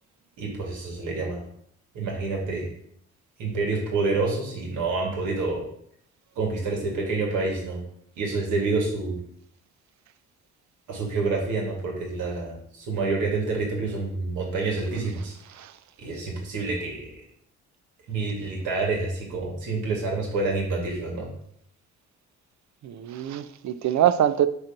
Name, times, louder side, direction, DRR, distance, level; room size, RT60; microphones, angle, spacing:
voice 1, 0.4-1.4 1.9-2.7 3.4-5.6 6.4-7.8 8.2-9.2 10.9-15.3 16.0-17.2 18.1-21.3, right 3 dB, 85° right, -1 dB, 2.2 m, -28 dB
voice 2, 15.5-15.8 22.8-24.5, right 10 dB, 65° right, 13 dB, 0.6 m, -24 dB
7.9 x 3.0 x 6.0 m, 0.68 s
cardioid pair, 90°, 30 cm